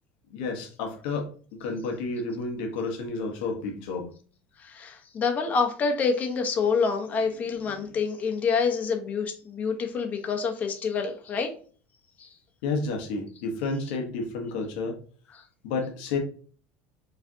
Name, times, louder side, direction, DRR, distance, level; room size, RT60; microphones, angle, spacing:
voice 1, 0.3-4.1 7.6-8.0 12.6-15.0 15.6-16.2, left 3 dB, 80° left, 2 dB, 1.1 m, -31 dB
voice 2, 4.6-11.5 12.2-12.3, left 5 dB, 30° left, 4 dB, 1.0 m, -27 dB
4.9 x 3.3 x 2.7 m, 0.42 s
cardioid pair, 140°, 5 cm